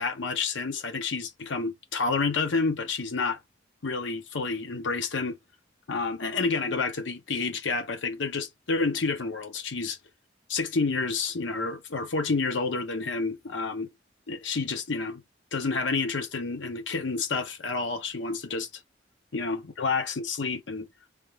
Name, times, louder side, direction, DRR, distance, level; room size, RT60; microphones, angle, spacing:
voice 1, 0.0-3.4 3.8-5.4 5.9-10.0 10.5-13.9 14.3-15.2 15.5-18.7 19.3-20.9, left 4 dB, 90° left, 0.8 m, -29 dB
3.2 x 2.3 x 3.2 m
head